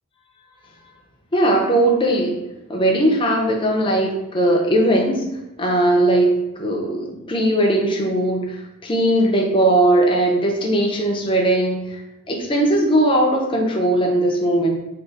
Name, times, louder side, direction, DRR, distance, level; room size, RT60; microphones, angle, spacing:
voice 1, 1.3-2.4 2.7-5.2 5.6-12.0 12.3-14.8, right 1 dB, 25° left, 0 dB, 0.5 m, -19 dB
2.4 x 2.4 x 3.9 m, 0.97 s
head